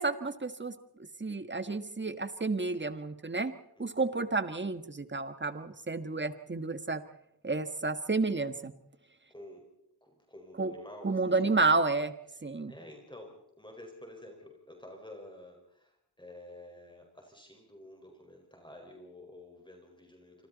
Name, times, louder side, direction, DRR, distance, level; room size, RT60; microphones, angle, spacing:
voice 1, 0.0-3.5 3.8-7.0 7.4-8.7 10.6-10.7 11.0-12.1 12.4-12.7, right 3 dB, 30° right, 10 dB, 1.5 m, -31 dB
voice 2, 3.8-4.2 9.3-9.7 10.0-11.6 12.7-20.5, left 1 dB, 10° left, 2 dB, 4.8 m, -50 dB
26.5 x 25.5 x 4.1 m, 0.80 s
wide cardioid pair, 80°, 39 cm